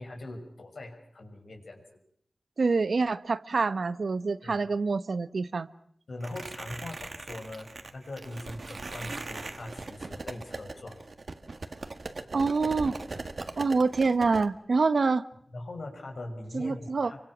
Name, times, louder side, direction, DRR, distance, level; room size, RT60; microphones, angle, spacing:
voice 1, 0.0-1.8 4.4-4.6 6.1-11.0 15.5-17.2, left 2 dB, 80° left, 3 dB, 5.9 m, -41 dB
voice 2, 2.6-5.7 12.3-13.0 13.6-15.2 16.5-17.1, right 4 dB, 80° right, 13 dB, 1.0 m, -26 dB
sound 1, 6.2-14.5, right 3 dB, 60° right, 1.7 m, -40 dB
29.5 x 24.5 x 6.2 m, 0.66 s
wide cardioid pair, 75°, 0 cm